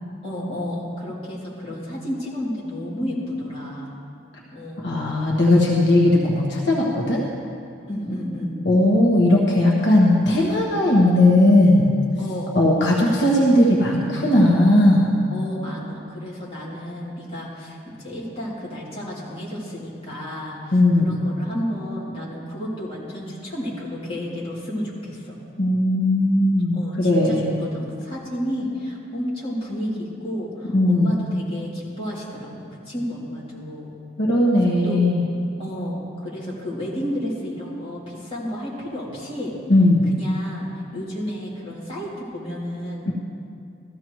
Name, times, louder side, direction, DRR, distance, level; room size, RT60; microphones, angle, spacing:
voice 1, 0.2-3.9 4.5-4.9 7.9-8.6 12.2-12.5 15.3-25.4 26.7-33.9 34.8-35.0 35.6-39.5 40.1-43.1, equal, 30° left, -7 dB, 2.9 m, -31 dB
voice 2, 4.8-7.2 8.6-11.9 12.5-15.2 20.7-21.2 25.6-27.5 30.7-31.2 34.2-35.3 39.7-40.1 43.1-43.2, left 1 dB, 75° left, -3 dB, 1.3 m, -17 dB
14.0 x 14.0 x 3.1 m, 2.5 s
head